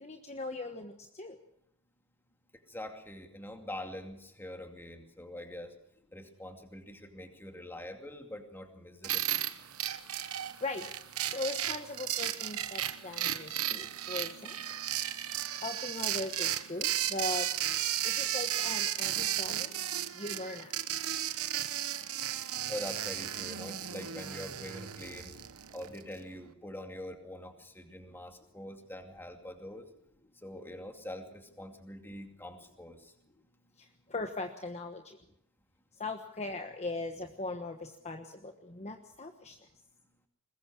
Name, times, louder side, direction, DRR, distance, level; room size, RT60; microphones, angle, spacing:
voice 1, 0.0-0.9 1.2-1.3 10.6-10.8 11.2-14.5 15.6-17.5 18.0-19.7 20.2-20.7 34.1-35.0 36.0-37.8 38.0-39.5, left 2 dB, 30° left, 5 dB, 1.3 m, -39 dB
voice 2, 2.5-5.7 6.1-9.4 22.7-25.3 25.7-29.9 30.4-33.1, left 1 dB, 10° left, 5 dB, 2.4 m, -44 dB
sound 1, 9.0-26.0, right 12 dB, 75° right, 1.1 m, -34 dB
21.5 x 20.0 x 6.2 m, 0.74 s
head